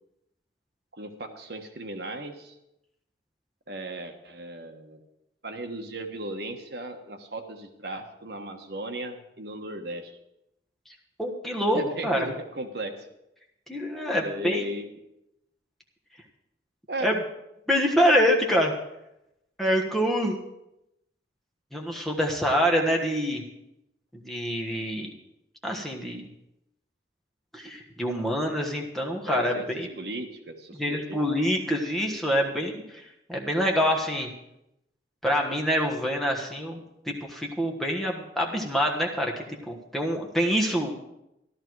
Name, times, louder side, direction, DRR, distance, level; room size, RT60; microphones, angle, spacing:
voice 1, 1.0-2.6 3.7-5.0 5.4-10.1 11.7-13.1 14.2-14.8 16.9-17.1 29.2-29.7 29.9-31.2 32.0-32.2, right 1 dB, 60° right, 5 dB, 1.3 m, -36 dB
voice 2, 11.2-12.3 13.7-14.6 17.0-17.2 17.7-18.7 19.6-20.4 21.7-23.4 24.2-25.1 25.6-26.3 27.5-29.9 30.8-33.0 33.3-34.3 35.2-39.3 39.7-40.9, equal, ahead, -1 dB, 1.4 m, -26 dB
14.0 x 12.5 x 4.7 m, 0.86 s
head